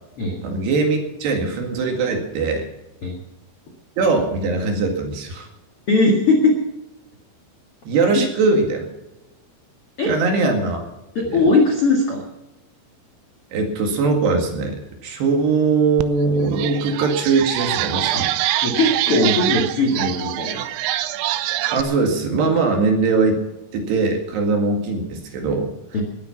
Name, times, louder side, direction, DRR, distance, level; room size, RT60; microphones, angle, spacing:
voice 1, 0.4-2.7 4.0-5.5 7.9-8.9 10.1-10.9 11.3-11.4 13.5-18.3 21.7-23.4 23.7-25.7, right 4 dB, 60° right, 3 dB, 3.9 m, -21 dB
voice 2, 5.9-6.6 10.0-10.1 11.1-12.2 18.1-18.2 18.6-20.6 25.9-26.0, left 2 dB, 55° left, 0 dB, 1.6 m, -19 dB
sound 1, 16.0-16.1 16.5-21.8, right 15 dB, 90° right, 3.3 m, -24 dB
20.5 x 9.6 x 5.8 m, 0.99 s
omnidirectional pair, 5.7 m